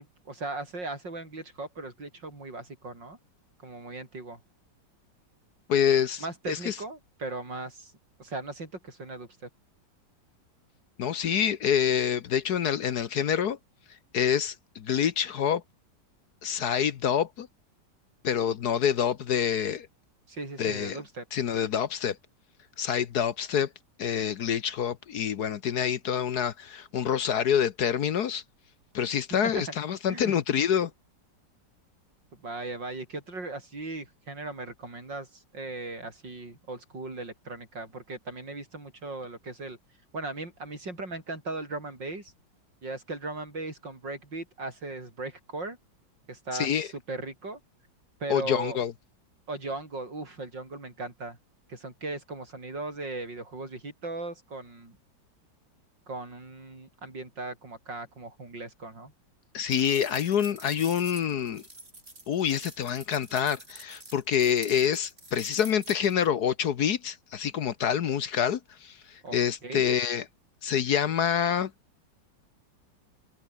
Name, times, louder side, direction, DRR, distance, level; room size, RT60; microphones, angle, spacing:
voice 1, 0.0-3.2 3.6-4.4 6.2-7.9 8.2-9.5 20.3-21.3 29.3-29.6 30.1-30.4 32.4-39.8 40.1-42.3 42.8-45.8 46.3-47.6 48.2-48.8 49.5-51.4 51.7-55.0 56.1-59.1 69.2-69.4 69.6-70.0, right 2 dB, 70° right, 7.0 m, -38 dB
voice 2, 5.7-6.2 6.5-6.7 11.0-13.6 14.1-15.6 16.4-17.5 18.2-19.9 20.6-21.0 21.3-22.2 22.8-23.7 24.0-28.4 28.9-30.9 46.5-46.9 48.3-48.9 59.5-61.6 62.3-70.2 70.6-71.7, left 8 dB, 60° left, 1.4 m, -27 dB
sound 1, 59.7-66.3, right 2 dB, 30° right, 6.8 m, -47 dB
omnidirectional pair, 2.0 m